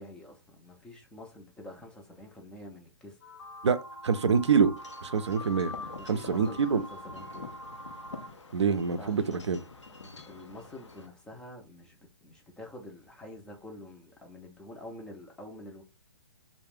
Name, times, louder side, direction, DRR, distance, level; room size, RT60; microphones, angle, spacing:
voice 1, 0.0-3.1 5.9-7.5 9.0-9.2 10.3-15.8, left 1 dB, 5° left, 0.3 m, -47 dB
sound 1, 3.2-8.3, left 1 dB, 55° left, 0.9 m, -44 dB
voice 2, 3.6-4.7 5.0-5.7 6.1-6.8 8.5-9.6, right 6 dB, 75° right, 0.4 m, -26 dB
Wind chime / Wind, 4.8-11.1, left 4 dB, 85° left, 0.6 m, -47 dB
2.3 x 2.1 x 3.5 m
figure-of-eight pair, 125°, 15 cm